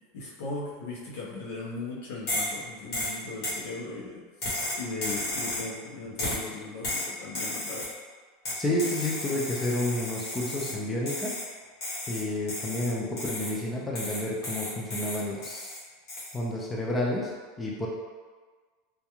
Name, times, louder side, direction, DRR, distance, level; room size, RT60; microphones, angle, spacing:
voice 1, 0.1-4.2 4.8-7.9, left 3 dB, 80° left, -5 dB, 0.7 m, -38 dB
sound 1, 2.3-2.6 2.9-3.6 4.4-5.7 6.2-6.5 6.8-8.0 8.4-10.8 11.1-11.5 11.8-13.6 13.9-15.8 16.1-16.4, left 1 dB, 55° left, 1.0 m, -33 dB
voice 2, 8.5-11.3 12.1-15.7 16.3-17.3 17.6-17.9, left 1 dB, 15° left, -3 dB, 0.3 m, -30 dB
2.3 x 2.2 x 2.9 m, 1.5 s
supercardioid pair, 135°, 0 cm